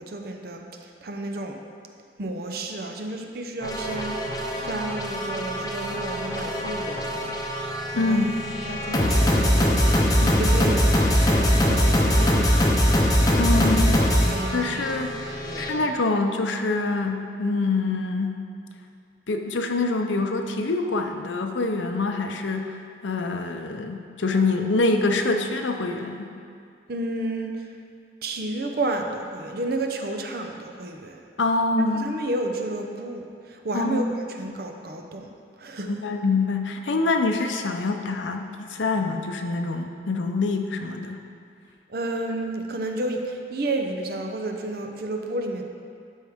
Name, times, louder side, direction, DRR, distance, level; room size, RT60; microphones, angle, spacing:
voice 1, 0.0-1.6 2.2-4.2 4.6-7.3 7.9-8.3 8.6-9.8 10.2-10.9 11.2-13.7 14.3-15.0 15.4-15.9 26.9-27.7 28.2-31.2 31.9-35.3 35.6-35.9 41.9-45.6, right 2 dB, 55° right, 4 dB, 0.6 m, -31 dB
sound 1, 3.6-15.7, equal, 20° left, 0.7 m, -22 dB
voice 2, 7.9-8.3 13.4-14.0 14.5-15.1 15.6-18.4 19.3-26.3 31.4-32.1 33.7-34.0 35.8-41.2, left 3 dB, 80° left, 5 dB, 0.6 m, -25 dB
12.5 x 4.7 x 3.6 m, 2.3 s
head